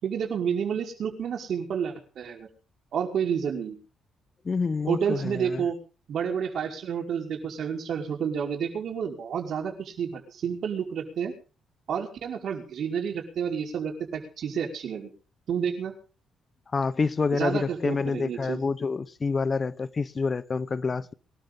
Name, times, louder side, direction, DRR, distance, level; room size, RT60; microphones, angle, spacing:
voice 1, 0.0-2.5 2.9-3.8 4.9-5.8 6.1-11.3 11.9-15.1 15.5-15.9 17.3-18.6, right 7 dB, 65° right, 5.5 m, -30 dB
voice 2, 4.4-5.6 16.7-21.1, left 4 dB, 35° left, 0.9 m, -27 dB
23.5 x 13.0 x 3.9 m
cardioid pair, 90°, 0 cm